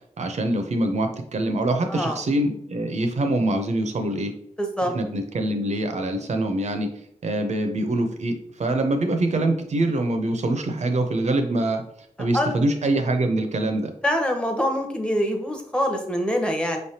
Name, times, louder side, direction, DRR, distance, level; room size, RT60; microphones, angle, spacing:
voice 1, 0.2-4.3 4.9-11.8 12.2-13.9, right 1 dB, 65° right, 6 dB, 0.6 m, -24 dB
voice 2, 4.6-4.9 12.3-12.6 14.0-16.8, equal, 10° left, 3 dB, 0.8 m, -24 dB
5.3 x 3.3 x 2.8 m, 0.68 s
wide cardioid pair, 105°, 13 cm